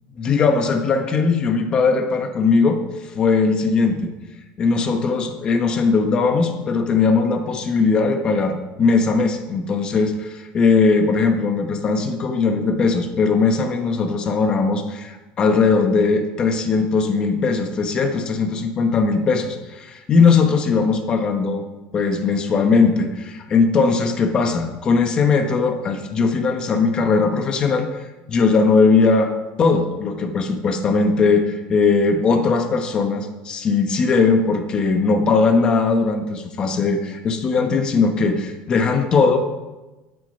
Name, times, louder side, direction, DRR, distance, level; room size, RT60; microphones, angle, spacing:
voice 1, 0.2-2.8 3.1-4.1 4.6-21.6 21.9-29.3 29.6-39.4, left 4 dB, 25° left, 6 dB, 1.1 m, -19 dB
12.0 x 8.3 x 5.3 m, 1.1 s
cardioid pair, 180°, 4 cm